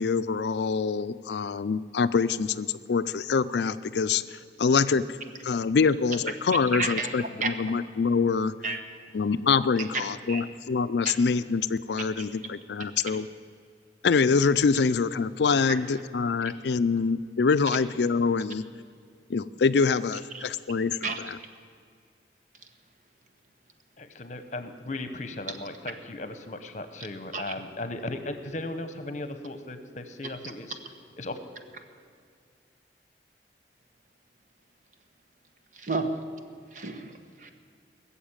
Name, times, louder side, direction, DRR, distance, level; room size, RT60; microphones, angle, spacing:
voice 1, 0.0-5.0 5.4-8.5 9.1-13.3 14.0-18.6 19.3-21.0, left 5 dB, 75° left, 14 dB, 0.4 m, -25 dB
voice 2, 6.7-7.8 8.6-8.8 10.3-10.4 12.2-12.3 20.3-20.4 21.0-21.2 27.3-27.5 30.2-30.3 35.7-36.2 36.7-37.1 37.4-37.5, right 3 dB, 45° right, 6 dB, 1.1 m, -31 dB
voice 3, 24.0-30.8 31.2-31.4, left 2 dB, 45° left, 9 dB, 1.0 m, -36 dB
19.0 x 7.2 x 8.8 m, 2.2 s
head